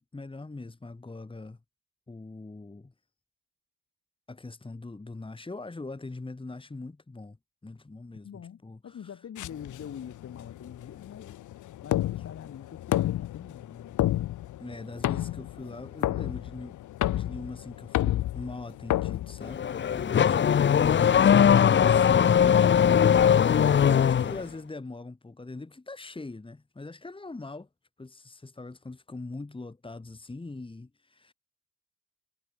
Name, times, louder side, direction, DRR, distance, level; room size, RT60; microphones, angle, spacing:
voice 1, 0.0-1.6 2.1-2.9 4.3-7.4 7.6-9.1 14.6-16.8 17.1-27.7 28.0-31.3, left 3 dB, 15° left, 3.4 m, -42 dB
voice 2, 8.2-11.4 11.8-14.0, left 8 dB, 55° left, 3.8 m, -44 dB
sound 1, 9.4-20.0, left 14 dB, 75° left, 1.5 m, -31 dB
Car / Accelerating revving vroom, 19.4-24.4, left 8 dB, 40° left, 0.8 m, -20 dB
cardioid pair, 90°, 30 cm